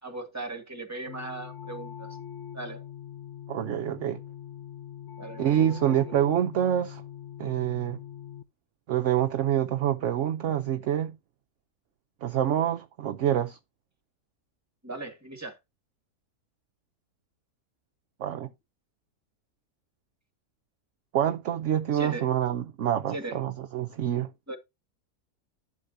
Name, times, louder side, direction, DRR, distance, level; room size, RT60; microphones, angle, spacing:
voice 1, 0.0-2.2 2.5-2.8 5.2-6.0 14.8-15.6 21.9-22.3 23.1-23.4 24.5-24.6, right 2 dB, 10° right, 1.8 m, -38 dB
sound 1, 1.1-8.4, left 10 dB, 55° left, 0.9 m, -42 dB
voice 2, 3.5-4.2 5.4-7.0 7.4-8.0 8.9-11.1 12.2-13.6 18.2-18.5 21.1-24.3, right 11 dB, 60° right, 0.8 m, -26 dB
11.5 x 7.4 x 2.6 m
omnidirectional pair, 1.7 m